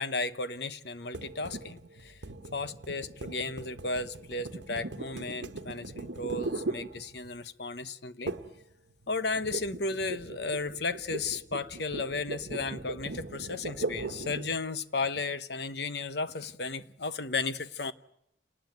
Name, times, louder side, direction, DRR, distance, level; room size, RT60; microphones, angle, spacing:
voice 1, 0.0-2.2 2.5-8.3 9.1-17.9, left 3 dB, 65° left, 1.0 m, -34 dB
sound 1, 1.1-7.5 8.3-8.6 8.9-14.6, right 2 dB, 75° right, 1.2 m, -39 dB
28.5 x 19.5 x 9.3 m
head